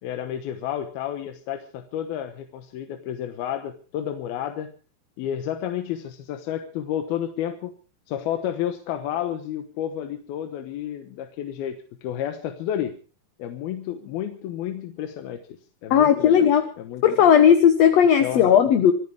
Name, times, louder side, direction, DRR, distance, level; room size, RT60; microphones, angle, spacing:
voice 1, 0.0-4.7 5.2-7.7 8.1-13.0 13.4-15.4 15.8-16.5 16.8-17.0 18.2-18.6, left 10 dB, 80° left, 7 dB, 3.1 m, -31 dB
voice 2, 15.9-16.7 17.0-18.9, left 8 dB, 60° left, 8 dB, 1.9 m, -16 dB
26.0 x 15.0 x 3.4 m, 0.37 s
omnidirectional pair, 4.3 m